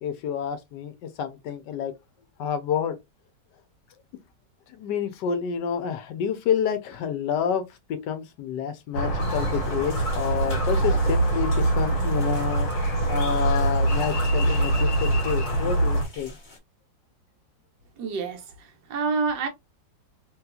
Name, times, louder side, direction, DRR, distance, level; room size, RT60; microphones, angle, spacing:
voice 1, 0.0-1.9 2.4-3.0 4.7-7.6 7.9-12.7 13.1-16.4, left 8 dB, 75° left, 1.2 m, -28 dB
Squeak, 8.9-16.0, right 2 dB, 60° left, 1.8 m, -24 dB
sound 1, 9.2-16.6, left 3 dB, 35° left, 0.8 m, -40 dB
voice 2, 18.0-19.5, right 4 dB, 80° right, 1.4 m, -28 dB
3.3 x 3.0 x 2.3 m
omnidirectional pair, 1.9 m